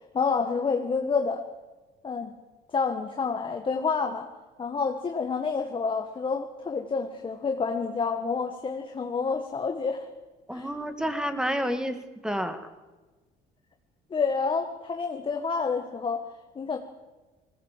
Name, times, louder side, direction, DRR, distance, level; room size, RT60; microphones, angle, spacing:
voice 1, 0.1-1.4 2.0-2.3 2.7-4.3 4.6-10.1 10.5-10.7 14.1-16.2 16.5-16.8, left 5 dB, 30° left, 4 dB, 1.7 m, -28 dB
voice 2, 10.5-12.7, equal, 5° right, 8 dB, 2.0 m, -30 dB
20.5 x 17.5 x 7.6 m, 1.2 s
cardioid pair, 110°, 17 cm